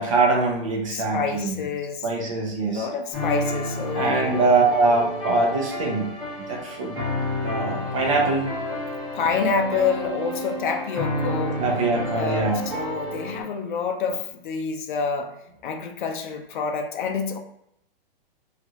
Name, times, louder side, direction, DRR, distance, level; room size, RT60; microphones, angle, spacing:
voice 1, 0.0-1.6 2.0-2.9 3.9-6.1 6.5-7.0 7.4-8.5 11.6-12.7, right 3 dB, 35° right, 0 dB, 0.6 m, -23 dB
voice 2, 0.9-2.1 2.6-4.5 9.1-11.6 12.1-15.3 15.6-17.4, left 5 dB, 55° left, 5 dB, 0.5 m, -27 dB
sound 1, 3.1-13.4, left 1 dB, 5° left, 1.5 m, -30 dB
3.0 x 2.5 x 2.7 m, 0.74 s
hypercardioid pair, 180°, 29 cm